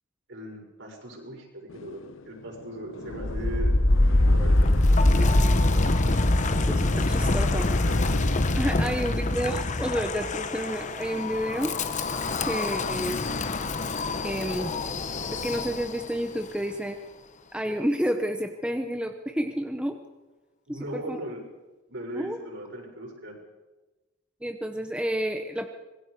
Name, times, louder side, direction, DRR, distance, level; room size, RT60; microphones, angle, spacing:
voice 1, 0.3-5.4 8.8-9.0 20.7-21.5 21.9-23.4, right 1 dB, 65° right, -1 dB, 6.5 m, -39 dB
sound 1, 1.7-10.5, left 3 dB, 80° left, 1.0 m, -38 dB
Wind, 3.1-16.1, left 2 dB, 40° left, 1.0 m, -24 dB
voice 2, 6.7-7.7 8.6-11.7 12.4-13.2 14.2-14.7 15.3-17.0 17.5-20.0 20.7-21.2 22.1-22.4 24.4-25.7, equal, 5° right, 5 dB, 1.0 m, -30 dB
25.5 x 22.0 x 5.0 m, 1.1 s
head